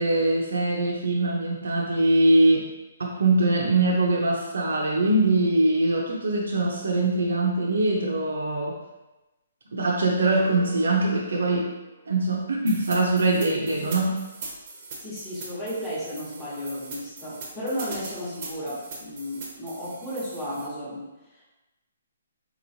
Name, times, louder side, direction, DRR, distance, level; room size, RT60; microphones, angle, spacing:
voice 1, 0.0-2.7 3.0-8.8 9.7-11.7 12.1-14.2, right 2 dB, 85° right, -2 dB, 0.6 m, -22 dB
sound 1, 10.3-12.6, right 3 dB, 75° left, 1.4 m, -46 dB
sound 2, 12.7-20.7, right 3 dB, 35° right, 0.7 m, -40 dB
voice 2, 15.0-21.4, equal, 5° left, -11 dB, 0.9 m, -34 dB
4.0 x 3.0 x 2.7 m, 1.0 s
hypercardioid pair, 170°, 0 cm